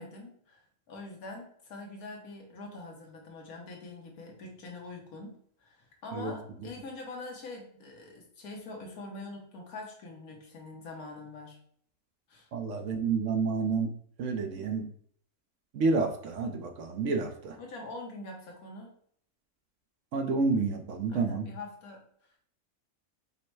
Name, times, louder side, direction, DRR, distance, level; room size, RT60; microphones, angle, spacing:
voice 1, 0.0-11.6 12.3-12.5 17.6-18.9 21.1-22.0, left 2 dB, 85° left, 0 dB, 1.5 m, -44 dB
voice 2, 12.5-13.9 14.2-14.9 15.7-17.6 20.1-21.5, right 4 dB, 65° right, 5 dB, 0.9 m, -29 dB
5.3 x 2.1 x 4.6 m, 0.62 s
omnidirectional pair, 1.5 m